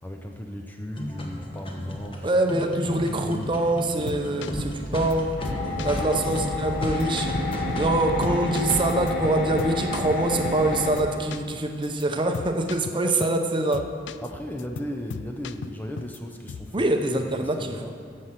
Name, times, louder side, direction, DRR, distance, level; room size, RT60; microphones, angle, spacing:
voice 1, 0.0-2.3 2.9-3.5 5.7-6.2 14.2-17.0 17.2-18.0, equal, 10° left, 3 dB, 0.5 m, -36 dB
sound 1, 1.0-9.0, equal, 30° left, 1.1 m, -33 dB
voice 2, 2.2-5.4 5.8-7.3 7.8-13.9 16.7-17.8, right 2 dB, 25° right, 5 dB, 0.7 m, -24 dB
sound 2, 3.9-5.1 5.4-6.0 6.3-6.4 6.8-7.9 8.2-10.7 11.0-11.5 11.8-12.0 12.3-13.4 13.7-14.3 14.6-16.2 16.5-16.8, left 5 dB, 65° left, 0.3 m, -38 dB
sound 3, 5.4-10.9, left 2 dB, 45° left, 1.9 m, -30 dB
9.9 x 6.5 x 7.4 m, 2.2 s
head